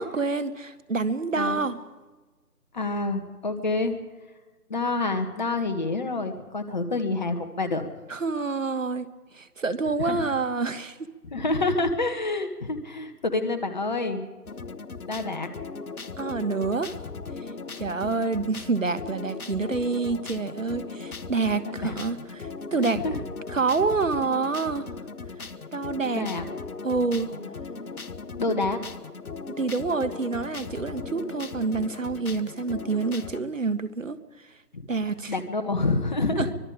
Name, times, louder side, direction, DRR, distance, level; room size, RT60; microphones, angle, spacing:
voice 1, 0.0-1.8 8.1-9.1 9.3-11.0 16.2-17.0 17.8-23.0 23.5-24.9 25.7-26.3 26.8-27.3 29.6-34.2 34.9-35.3 36.4-36.5, right 4 dB, 55° right, 13 dB, 1.5 m, -27 dB
voice 2, 2.7-3.9 4.7-7.9 10.0-10.2 11.2-14.3 15.1-15.5 21.6-22.0 22.8-23.2 26.1-26.4 27.1-27.5 28.4-28.8 34.7-34.8 35.3-36.5, left 3 dB, 30° left, 7 dB, 1.7 m, -28 dB
sound 1, 14.4-33.4, left 4 dB, 65° left, 1.3 m, -38 dB
24.5 x 22.0 x 5.0 m, 1.3 s
figure-of-eight pair, 160°, 46 cm